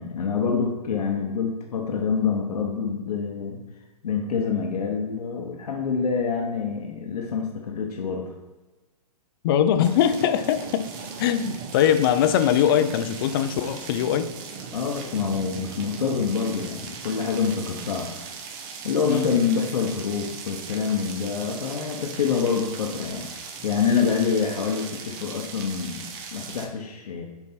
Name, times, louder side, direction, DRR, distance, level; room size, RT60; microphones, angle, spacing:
voice 1, 0.0-3.6 4.0-8.3 14.7-18.1 18.8-23.3 23.6-27.3, left 6 dB, 80° left, 1 dB, 1.0 m, -26 dB
voice 2, 9.4-10.8 11.2-14.3 19.1-19.3, left 9 dB, 40° left, 10 dB, 0.5 m, -21 dB
sound 1, 9.8-26.7, right 5 dB, 30° right, 0.8 m, -39 dB
7.3 x 4.6 x 4.3 m, 1.2 s
hypercardioid pair, 150°, 19 cm